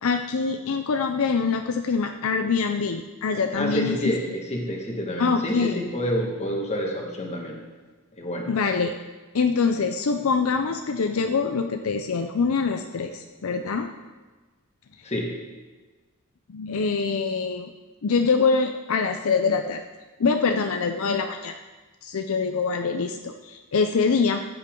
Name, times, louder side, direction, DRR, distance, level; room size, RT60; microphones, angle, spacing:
voice 1, 0.0-4.1 5.2-5.9 8.5-8.9 9.3-13.9 16.5-17.7 18.0-19.8 20.2-21.6 22.0-24.4, left 5 dB, 65° left, 6 dB, 0.5 m, -24 dB
voice 2, 3.5-7.6 8.2-8.5 15.0-15.3, equal, 30° left, 0 dB, 1.7 m, -28 dB
14.5 x 8.4 x 3.8 m, 1.3 s
head